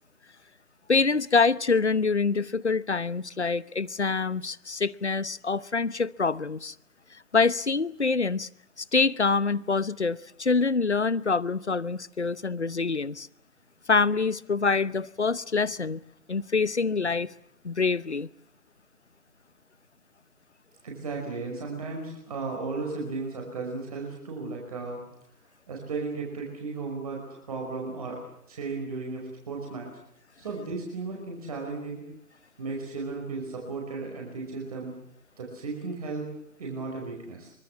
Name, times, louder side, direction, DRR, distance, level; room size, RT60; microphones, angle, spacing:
voice 1, 0.9-6.7 7.1-8.5 8.8-13.3 13.9-16.0 16.3-17.3 17.6-18.3, left 4 dB, 45° left, 20 dB, 1.0 m, -25 dB
voice 2, 20.8-25.0 25.7-28.2 28.5-29.9 30.4-32.0 32.6-34.9 35.4-36.3 36.6-37.5, right 4 dB, 25° right, 0 dB, 5.5 m, -35 dB
25.5 x 24.5 x 7.4 m, 0.74 s
figure-of-eight pair, 160°, 46 cm